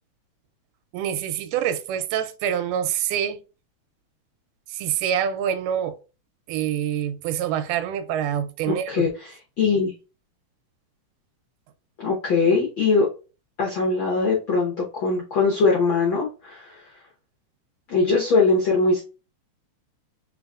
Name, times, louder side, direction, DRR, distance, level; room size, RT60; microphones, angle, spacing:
voice 1, 0.9-3.4 4.7-6.0 6.5-9.1, right 9 dB, 90° right, 2.1 m, -26 dB
voice 2, 8.7-9.9 12.0-13.1 13.6-16.9 17.9-19.0, left 4 dB, 80° left, 1.0 m, -21 dB
3.9 x 3.9 x 2.3 m
omnidirectional pair, 3.6 m